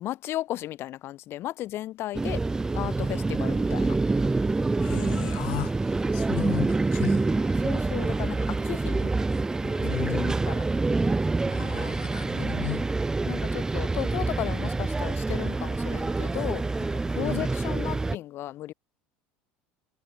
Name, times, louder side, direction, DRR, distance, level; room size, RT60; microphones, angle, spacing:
voice 1, 0.0-2.4 2.7-4.0 7.6-9.1 9.6-10.2 10.4-10.6 13.2-18.7, left 14 dB, 50° left, 1.1 m, -35 dB
sound 1, 2.1-18.2, right 3 dB, 10° right, 0.3 m, -26 dB
voice 2, 4.8-7.6 9.8-10.4 11.4-12.9 17.2-17.5, left 38 dB, 70° left, 1.6 m, -35 dB
hypercardioid pair, 90°, 5 cm